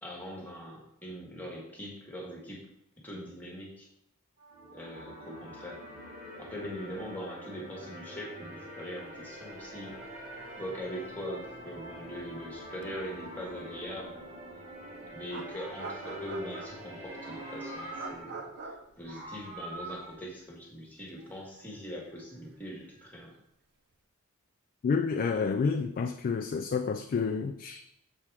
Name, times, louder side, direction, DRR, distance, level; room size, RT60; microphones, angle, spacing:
voice 1, 0.0-2.6 3.0-3.9 4.7-5.8 6.4-10.0 10.6-14.2 15.1-18.5 19.0-23.3, equal, 10° left, -2 dB, 1.5 m, -41 dB
sound 1, 4.4-18.1, equal, 35° right, 1.8 m, -45 dB
Meow, 9.7-12.3 12.6-14.3 15.1-16.7 17.0-18.5 18.8-20.1, right 2 dB, 80° right, 1.9 m, -47 dB
sound 2, 10.1-10.2 10.5-10.6 12.8-12.9 14.7-14.8 15.3-17.0 17.9-19.9 20.2-20.4 21.1-23.4, right 3 dB, 50° right, 0.7 m, -45 dB
voice 2, 24.8-27.8, left 5 dB, 40° left, 6 dB, 0.3 m, -29 dB
6.9 x 4.8 x 3.5 m, 0.75 s
head